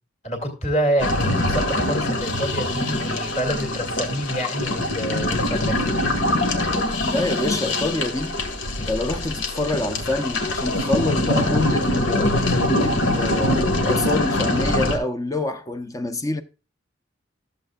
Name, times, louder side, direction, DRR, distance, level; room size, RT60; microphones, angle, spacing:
voice 1, 0.2-6.0, right 1 dB, 35° left, 2.4 m, -27 dB
sound 1, 1.0-15.0, left 1 dB, 75° left, 1.8 m, -23 dB
voice 2, 7.0-8.4 8.8-12.3 12.8-16.4, left 2 dB, 15° left, 0.6 m, -26 dB
13.5 x 7.6 x 2.4 m
head